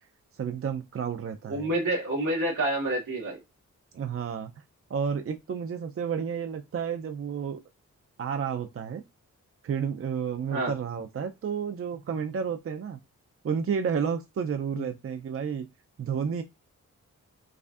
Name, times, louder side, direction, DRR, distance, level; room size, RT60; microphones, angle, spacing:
voice 1, 0.4-1.7 3.9-4.5 4.9-7.6 8.2-9.0 9.6-13.0 13.4-15.7 16.0-16.4, right 7 dB, 45° right, 0.5 m, -31 dB
voice 2, 1.5-3.4 10.5-10.7 14.7-14.9, right 1 dB, 80° right, 1.9 m, -28 dB
4.8 x 2.3 x 2.6 m
cardioid pair, 55°, 32 cm